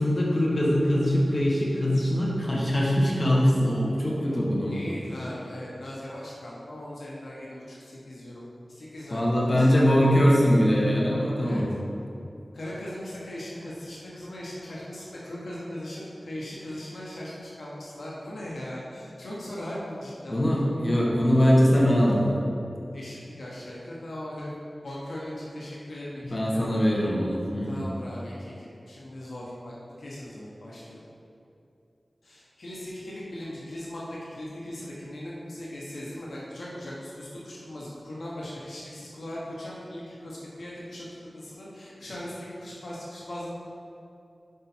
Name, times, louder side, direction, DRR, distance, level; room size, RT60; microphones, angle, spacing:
voice 1, 0.0-4.9 9.1-11.7 20.3-22.3 26.3-27.8, equal, 40° left, -4 dB, 1.3 m, -22 dB
voice 2, 4.7-8.4 8.7-10.1 11.4-11.6 12.5-20.7 22.9-24.5 24.8-26.8 27.6-31.0 32.2-41.1 41.3-43.5, left 1 dB, 80° left, -6 dB, 1.0 m, -39 dB
5.2 x 4.7 x 4.3 m, 2.7 s
cardioid pair, 45°, 0 cm